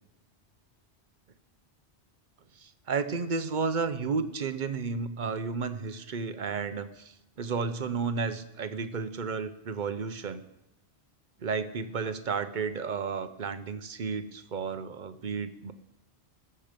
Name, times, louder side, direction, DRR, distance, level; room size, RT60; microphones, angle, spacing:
voice 1, 2.6-10.4 11.4-15.7, right 5 dB, 50° right, 11 dB, 0.9 m, -32 dB
21.0 x 7.1 x 5.2 m, 0.90 s
omnidirectional pair, 1.1 m